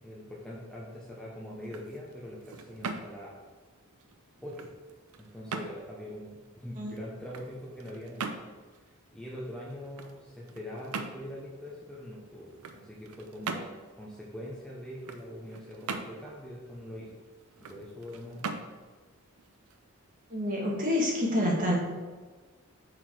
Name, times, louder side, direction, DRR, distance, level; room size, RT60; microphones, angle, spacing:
voice 1, 0.0-3.3 4.4-4.7 5.2-8.3 9.1-13.7 13.9-17.2 17.6-18.6, equal, 5° left, -5 dB, 0.8 m, -43 dB
sound 1, 1.5-20.3, right 4 dB, 80° right, 0.6 m, -43 dB
voice 2, 20.3-21.7, left 1 dB, 40° right, -2 dB, 1.6 m, -28 dB
5.9 x 4.7 x 4.4 m, 1.4 s
head